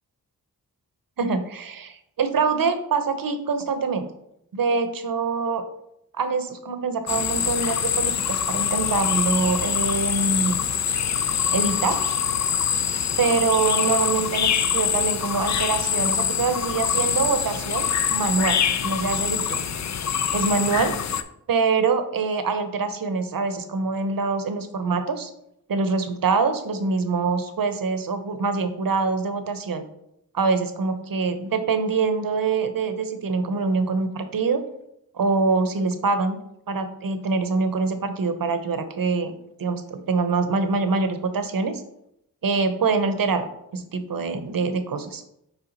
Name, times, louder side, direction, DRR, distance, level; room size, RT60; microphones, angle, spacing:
voice 1, 1.2-4.1 4.5-5.6 6.1-10.6 11.5-12.0 13.2-19.6 20.3-20.9 21.5-25.3 25.7-29.8 30.3-34.6 35.1-36.4 36.7-39.3 39.6-41.8 42.4-43.5 43.7-45.2, right 4 dB, 65° right, 9 dB, 0.8 m, -24 dB
sound 1, 7.1-21.2, left 8 dB, 50° left, 0.4 m, -24 dB
5.7 x 4.7 x 4.1 m, 0.79 s
wide cardioid pair, 70°, 37 cm